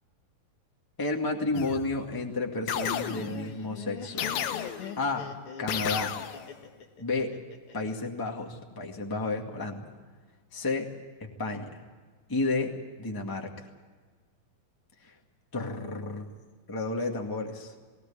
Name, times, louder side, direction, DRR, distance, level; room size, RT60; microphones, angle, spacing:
voice 1, 1.0-4.3 5.0-5.3 5.6-6.1 7.0-7.3 7.7-9.8 10.5-10.9 11.2-11.8 12.3-12.7 13.0-13.5 15.0-15.1 15.5-16.3 16.7-17.7, left 3 dB, 15° left, 2 dB, 0.7 m, -31 dB
sound 1, 1.5-2.1 2.7-3.5 4.2-5.1 5.7-6.6, left 9 dB, 80° left, 2.9 m, -33 dB
Laughter, 2.9-7.9, left 6 dB, 55° left, 1.7 m, -43 dB
19.5 x 18.0 x 8.6 m, 1.5 s
omnidirectional pair, 4.3 m